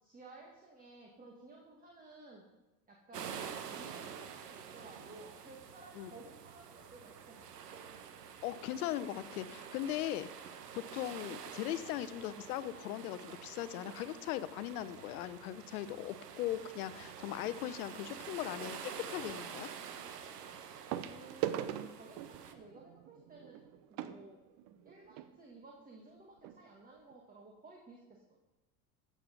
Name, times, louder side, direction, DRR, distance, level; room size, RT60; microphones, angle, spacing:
voice 1, 0.0-2.5 2.9-7.5 21.1-21.6 21.9-23.6 23.9-24.4 24.8-28.2, right 2 dB, 20° right, 0 dB, 2.0 m, -55 dB
sound 1, 3.1-22.5, right 7 dB, 80° right, 1.2 m, -48 dB
voice 2, 8.4-10.5 10.8-19.7, left 13 dB, 65° left, 14 dB, 0.9 m, -39 dB
sound 2, 17.3-17.6 19.3-19.4 20.9-25.3 26.1-26.2 26.4-26.6 27.1-27.2, right 11 dB, 50° right, 0.9 m, -41 dB
14.5 x 7.5 x 5.3 m, 1.0 s
hypercardioid pair, 85°, 47 cm